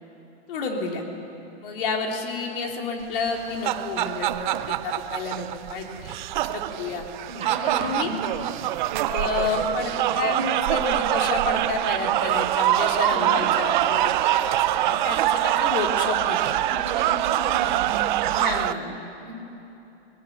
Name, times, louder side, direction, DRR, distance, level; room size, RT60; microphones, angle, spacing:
voice 1, 0.5-1.0 1.6-7.0 7.6-8.1 9.1-14.4 14.8-16.6 18.3-18.9, left 4 dB, 55° left, 2 dB, 3.4 m, -30 dB
sound 1, 3.3-18.7, right 14 dB, 45° right, 0.6 m, -24 dB
voice 2, 7.3-8.3 13.1-13.4 16.7-18.3 19.2-19.3, right 3 dB, 20° right, 1 dB, 4.0 m, -34 dB
19.5 x 18.0 x 9.3 m, 3.0 s
hypercardioid pair, 150°, 32 cm